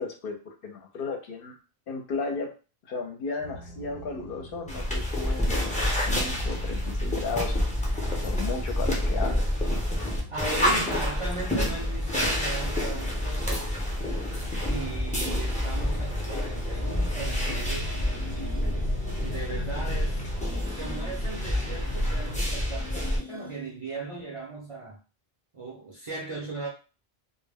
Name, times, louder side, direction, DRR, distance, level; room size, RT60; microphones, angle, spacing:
voice 1, 0.0-1.6 1.9-2.5 2.9-8.0 8.2-9.5, left 4 dB, 65° left, 2 dB, 0.7 m, -35 dB
sound 1, 3.4-20.6, right 1 dB, 65° right, 0.8 m, -43 dB
sound 2, 4.7-23.2, left 1 dB, 10° left, 0.5 m, -28 dB
voice 2, 10.3-13.8 14.7-18.1 19.2-20.3 20.7-25.0 25.5-26.7, right 3 dB, 40° right, -3 dB, 0.5 m, -37 dB
sound 3, 16.3-23.8, left 3 dB, 30° left, 0.8 m, -42 dB
2.1 x 2.1 x 3.3 m, 0.34 s
omnidirectional pair, 1.0 m